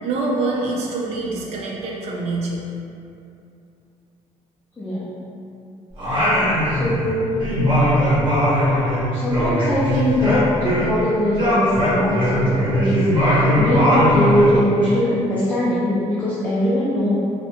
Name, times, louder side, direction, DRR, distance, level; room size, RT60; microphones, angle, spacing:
voice 1, 0.0-2.7, right 3 dB, 55° right, -2 dB, 0.4 m, -25 dB
voice 2, 4.8-5.2 6.6-7.5 9.1-17.2, left 1 dB, 15° left, -9 dB, 0.3 m, -21 dB
Singing, 6.0-7.1 7.4-11.0 11.3-14.5, equal, 40° right, 0.9 m, -19 dB
2.7 x 2.0 x 2.8 m, 2.7 s
cardioid pair, 165°, 12 cm